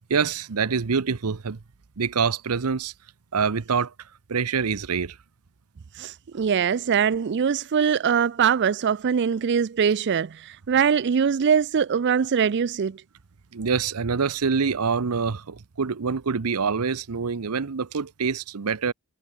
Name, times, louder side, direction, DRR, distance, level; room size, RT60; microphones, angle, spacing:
voice 1, 0.1-1.6 2.0-2.9 3.3-3.9 4.3-5.2 13.5-18.9, right 5 dB, 90° right, 0.8 m, -25 dB
voice 2, 6.0-13.0, right 7 dB, 50° right, 0.4 m, -22 dB
head